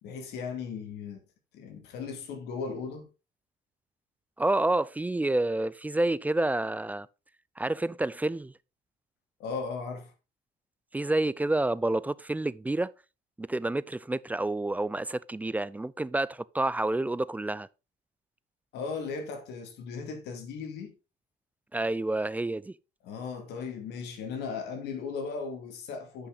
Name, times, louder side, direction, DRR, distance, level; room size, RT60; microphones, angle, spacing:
voice 1, 0.0-1.2 1.5-3.1 9.4-10.1 18.7-20.9 23.0-26.3, left 5 dB, 80° left, 2.4 m, -37 dB
voice 2, 4.4-7.1 7.6-8.5 10.9-12.9 13.4-17.7 21.7-22.7, right 2 dB, 10° right, 0.3 m, -29 dB
10.0 x 5.7 x 3.9 m
cardioid pair, 110°, 17 cm